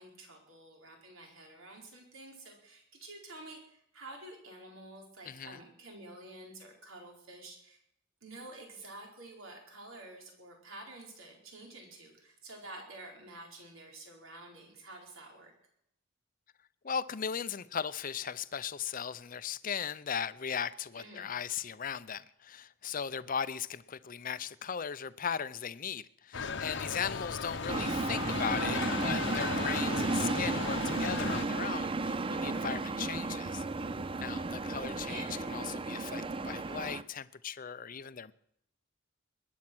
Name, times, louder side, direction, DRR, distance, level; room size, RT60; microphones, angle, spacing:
voice 1, 0.0-7.8 8.2-15.5 20.9-21.3 26.9-27.1 35.0-35.3, right 2 dB, 80° right, 4.3 m, -49 dB
voice 2, 5.3-5.6 16.8-33.6 34.2-35.2 35.5-38.3, left 7 dB, 40° left, 0.6 m, -37 dB
sound 1, 26.3-31.5, left 4 dB, 60° left, 0.9 m, -36 dB
sound 2, 27.7-37.0, right 3 dB, 25° right, 0.5 m, -34 dB
21.0 x 9.9 x 6.1 m
head